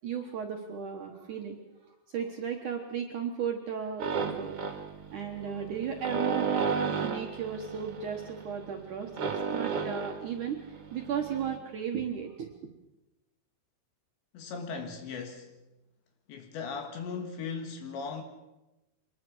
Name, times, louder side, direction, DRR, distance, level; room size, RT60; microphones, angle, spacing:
voice 1, 0.0-1.6 1.9-4.6 5.1-10.6 10.9-12.5, right 7 dB, 65° right, 2.0 m, -35 dB
sound 1, 4.0-11.6, right 6 dB, 40° right, 2.2 m, -34 dB
voice 2, 14.3-15.6 16.3-18.2, left 5 dB, 70° left, 3.6 m, -38 dB
24.5 x 20.5 x 6.3 m
omnidirectional pair, 5.6 m